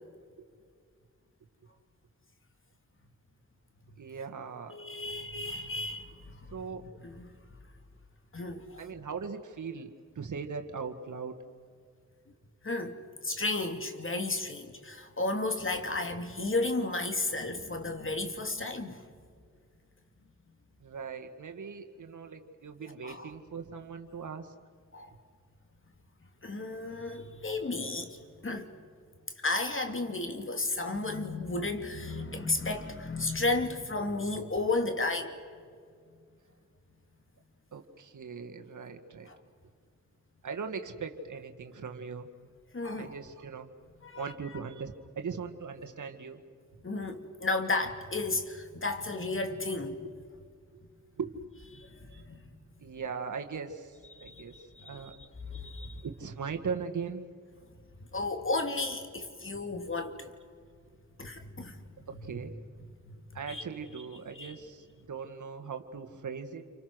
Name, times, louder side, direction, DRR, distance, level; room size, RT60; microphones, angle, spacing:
voice 1, 4.0-4.8 6.5-6.9 8.8-11.4 20.8-24.5 37.7-39.3 40.4-42.3 43.0-43.7 44.2-46.4 51.2-51.4 52.8-54.5 54.8-55.2 56.0-57.3 62.1-62.6 63.3-66.7, right 5 dB, 65° right, 1.9 m, -39 dB
voice 2, 4.7-6.7 7.0-7.3 8.3-8.8 12.6-19.1 22.9-23.3 24.9-25.1 26.4-28.7 29.4-35.3 39.2-39.4 42.7-43.2 44.0-44.3 46.8-50.1 51.7-52.4 54.2-55.1 55.5-56.1 58.1-60.3 61.2-62.4 63.1-63.6 64.3-64.5, left 2 dB, 40° left, 2.8 m, -33 dB
29.5 x 25.0 x 6.3 m
cardioid pair, 45°, 32 cm